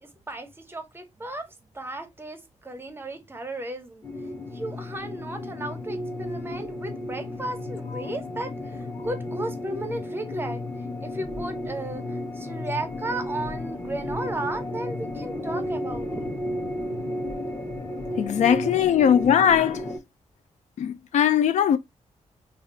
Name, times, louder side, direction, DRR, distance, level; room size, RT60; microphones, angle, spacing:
voice 1, 0.0-1.5 1.7-4.0 4.5-8.5 8.8-10.6 11.0-12.0 12.4-16.3, right 2 dB, 20° right, 0.7 m, -34 dB
sound 1, 4.0-20.0, left 1 dB, 20° left, 0.9 m, -33 dB
voice 2, 18.2-19.9 20.8-21.8, left 9 dB, 75° left, 0.4 m, -20 dB
3.3 x 2.4 x 2.7 m
cardioid pair, 110°, 12 cm